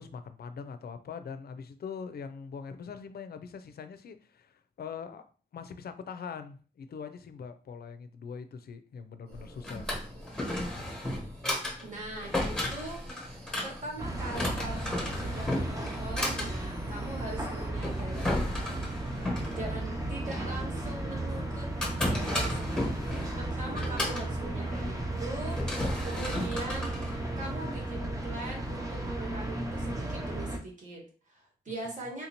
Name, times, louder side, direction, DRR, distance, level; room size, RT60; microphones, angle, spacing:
voice 1, 0.0-5.2 5.5-9.9, left 6 dB, 70° left, 10 dB, 0.4 m, -42 dB
Drawer open or close, 9.3-27.9, left 1 dB, 5° left, 1.0 m, -35 dB
sound 1, 9.3-17.7, right 2 dB, 70° right, 1.0 m, -55 dB
voice 2, 11.8-13.0 13.6-18.8 19.5-21.7 22.1-22.9 23.4-26.9 27.4-32.3, right 2 dB, 50° right, -1 dB, 1.3 m, -41 dB
sound 2, 14.0-30.6, right 1 dB, 20° right, 0.6 m, -35 dB
3.6 x 2.6 x 2.9 m, 0.39 s
wide cardioid pair, 160°, 17 cm